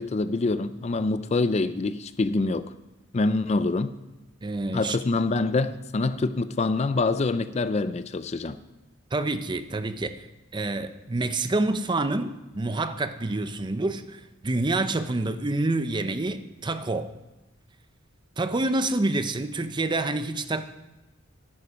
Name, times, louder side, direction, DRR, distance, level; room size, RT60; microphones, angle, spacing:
voice 1, 0.0-2.7 3.1-3.9 4.7-8.6, left 3 dB, 35° left, 0.4 m, -25 dB
voice 2, 4.4-5.0 9.1-10.3 10.5-17.1 18.4-20.6, right 2 dB, 20° right, 0.5 m, -27 dB
11.5 x 11.0 x 5.1 m
head